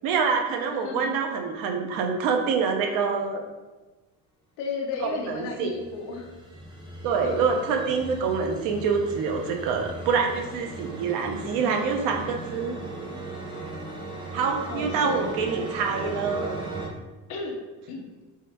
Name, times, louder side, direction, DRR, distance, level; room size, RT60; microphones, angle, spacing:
voice 1, 0.0-3.4 5.0-5.7 7.0-12.8 14.3-16.6, right 5 dB, 75° right, 3 dB, 0.7 m, -26 dB
voice 2, 0.7-1.2 4.6-6.3 7.2-7.6 14.7-15.3 17.3-17.6 17.9-18.0, left 4 dB, 65° left, 0 dB, 0.7 m, -34 dB
sound 1, 5.3-16.9, right 2 dB, 15° right, 0.5 m, -37 dB
3.6 x 3.2 x 2.9 m, 1.2 s
cardioid pair, 170°, 35 cm